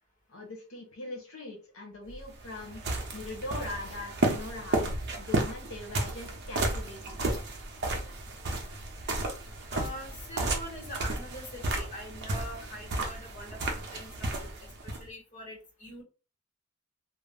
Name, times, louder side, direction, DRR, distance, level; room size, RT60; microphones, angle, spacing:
voice 1, 0.3-2.8 3.1-4.9 5.2-7.2, left 2 dB, 85° left, 1 dB, 0.8 m, -41 dB
sound 1, 2.1-15.0, right 2 dB, 55° right, 0.7 m, -33 dB
voice 2, 9.7-16.0, equal, 40° left, -2 dB, 1.3 m, -44 dB
2.4 x 2.1 x 3.4 m, 0.33 s
head